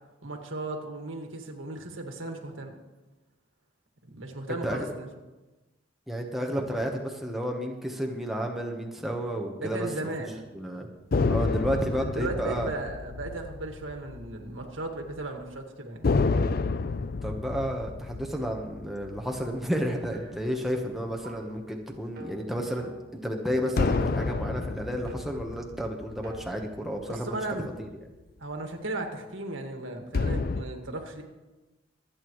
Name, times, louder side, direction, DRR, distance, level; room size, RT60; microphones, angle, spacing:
voice 1, 0.2-2.7 4.0-5.1 9.6-10.5 11.7-16.1 27.1-27.7 28.4-31.2, right 2 dB, 90° right, 3 dB, 1.9 m, -36 dB
voice 2, 6.1-10.1 10.5-10.9 11.3-12.7 17.2-22.9 23.2-27.4 27.8-27.9, equal, ahead, 0 dB, 1.2 m, -31 dB
sound 1, 11.1-14.8 15.1-15.3 16.0-20.7 23.8-27.4 30.1-30.6, left 3 dB, 50° left, 0.5 m, -30 dB
sound 2, 20.1-20.6 21.2-21.6 22.2-23.3 23.9-24.4 25.1-25.5 26.2-26.5, right 2 dB, 50° right, 1.7 m, -47 dB
25.5 x 8.9 x 3.2 m, 1.1 s
head